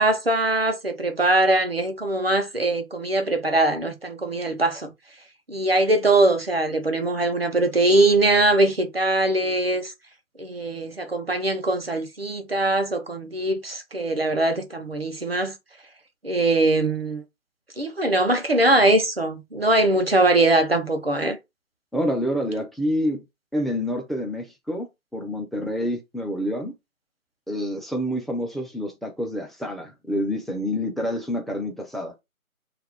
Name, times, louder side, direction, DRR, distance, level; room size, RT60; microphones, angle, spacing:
voice 1, 0.0-4.9 5.5-9.9 10.4-15.5 16.2-17.2 17.8-21.4, right 2 dB, 45° right, 0.6 m, -21 dB
voice 2, 21.9-23.2 23.5-24.9 25.1-26.7 27.5-32.1, equal, ahead, 0.4 m, -27 dB
2.5 x 2.4 x 3.3 m
figure-of-eight pair, 170°, 43 cm